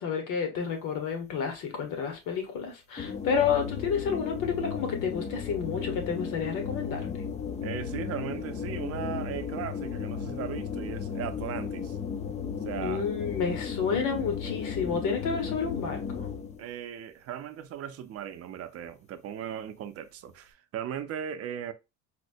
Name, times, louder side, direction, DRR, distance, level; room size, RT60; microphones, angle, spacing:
voice 1, 0.0-7.2 12.8-16.3, left 6 dB, 70° left, 1.3 m, -30 dB
sound 1, 3.0-16.6, left 7 dB, 25° left, 0.4 m, -35 dB
voice 2, 7.6-12.0 12.6-13.1 16.6-21.7, right 9 dB, 50° right, 0.5 m, -37 dB
4.2 x 2.1 x 2.6 m
cardioid pair, 140°, 32 cm